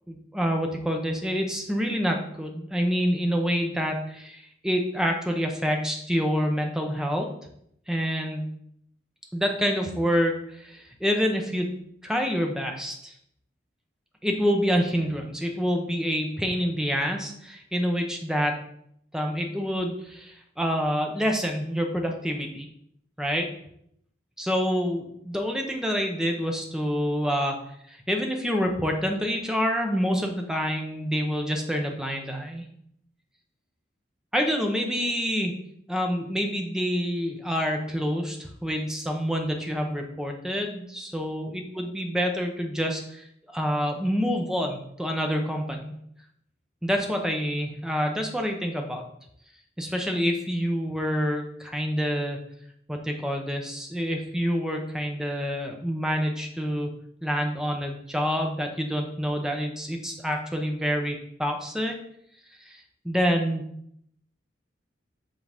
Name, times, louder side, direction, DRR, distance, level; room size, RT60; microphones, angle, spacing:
voice 1, 0.1-7.3 7.9-8.5 9.3-11.7 12.0-13.1 14.2-18.6 19.1-22.7 23.2-23.5 24.4-27.6 28.1-32.6 34.3-35.5 35.9-43.3 43.5-45.9 46.8-49.0 49.8-52.4 52.9-56.9 57.2-62.0 62.7-63.7, equal, 5° right, 2 dB, 0.7 m, -27 dB
7.3 x 3.8 x 3.5 m, 0.72 s
head